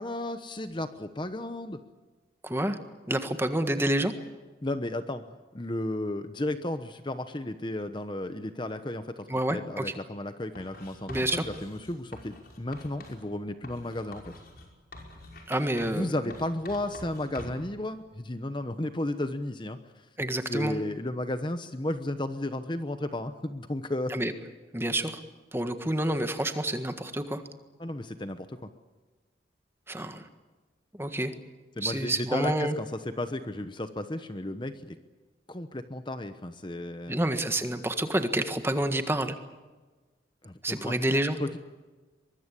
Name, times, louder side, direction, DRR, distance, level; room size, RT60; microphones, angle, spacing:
voice 1, 0.0-1.8 4.6-14.3 15.9-20.1 20.5-24.2 27.8-28.7 31.8-35.0 35.5-37.2 40.4-41.0 41.4-41.6, left 1 dB, 25° left, 10 dB, 1.0 m, -34 dB
voice 2, 2.4-2.8 3.1-4.1 9.3-9.9 11.1-11.4 15.5-16.1 20.2-20.8 24.1-24.3 24.7-25.2 25.5-27.4 29.9-30.2 31.0-31.3 31.8-32.8 37.1-39.3 40.6-41.4, right 1 dB, 15° right, 8 dB, 1.6 m, -28 dB
Writing, 10.5-13.2 13.6-16.0 16.3-17.7, left 1 dB, 50° left, 5.5 m, -46 dB
23.5 x 22.0 x 8.4 m, 1.3 s
head